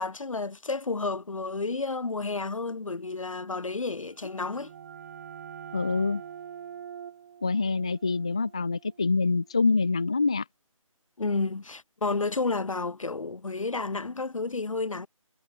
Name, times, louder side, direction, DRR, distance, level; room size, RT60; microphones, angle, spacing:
voice 1, 0.0-4.7 11.2-15.1, left 3 dB, 65° left, 4.6 m, -31 dB
sound 1, 4.0-9.6, right 8 dB, 30° right, 2.3 m, -45 dB
voice 2, 5.7-6.2 7.4-10.4, left 4 dB, 10° left, 0.4 m, -25 dB
figure-of-eight pair, 160°, 18 cm